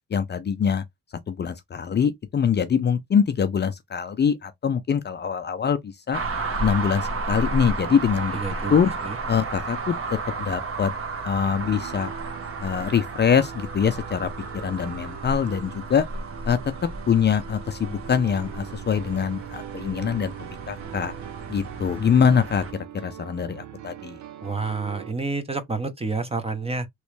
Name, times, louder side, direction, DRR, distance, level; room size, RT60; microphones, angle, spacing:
voice 1, 0.1-0.8 1.3-6.2 6.6-8.4 8.7-8.9 9.3-10.0 10.4-10.9 11.2-12.1 12.6-14.3 14.6-16.1 16.4-16.6 17.1-21.1 21.5-22.6 23.0-24.2, left 7 dB, 35° left, 0.5 m, -23 dB
sound 1, 6.1-22.7, right 3 dB, 45° right, 1.3 m, -33 dB
voice 2, 8.3-8.7 9.0-9.2 24.4-26.9, right 3 dB, 20° right, 0.8 m, -29 dB
Piano, 11.4-25.1, right 11 dB, 70° right, 0.7 m, -41 dB
3.1 x 3.1 x 3.2 m
cardioid pair, 90°, 30 cm